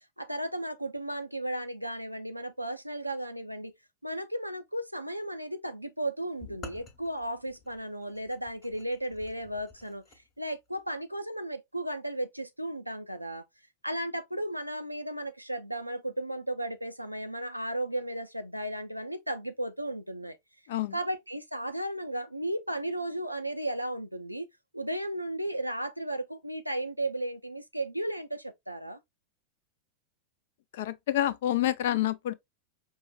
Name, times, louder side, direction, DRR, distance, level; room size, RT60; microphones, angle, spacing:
voice 1, 0.2-3.7 4.0-10.0 10.4-13.4 13.8-20.4 20.9-24.5 24.7-29.0, right 1 dB, 90° right, 0.4 m, -35 dB
sound 1, 6.4-10.2, left 4 dB, 35° left, 0.9 m, -50 dB
voice 2, 20.7-21.0 30.7-32.3, left 12 dB, 55° left, 0.4 m, -28 dB
5.2 x 2.1 x 2.4 m
figure-of-eight pair, 90°, 0 cm